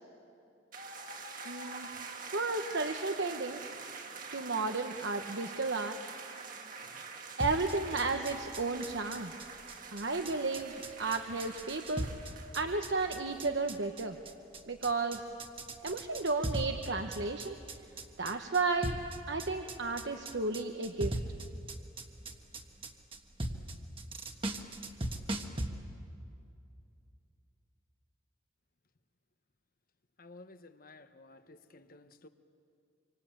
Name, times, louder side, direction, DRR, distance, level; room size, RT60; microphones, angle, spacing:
sound 1, 0.7-13.4, right 4 dB, 45° right, 1.8 m, -46 dB
voice 1, 1.4-1.9 2.3-3.7 4.3-6.0 7.4-9.3 9.9-10.7 11.0-12.1 12.5-14.2 14.7-15.3 15.8-17.6 18.2-19.0 19.3-21.2, right 3 dB, 70° right, 5 dB, 1.2 m, -33 dB
sound 2, 7.4-25.7, right 1 dB, 25° right, 1.5 m, -39 dB
voice 2, 30.2-32.3, left 2 dB, 50° left, 10 dB, 1.1 m, -54 dB
27.0 x 25.0 x 9.0 m, 2.5 s
head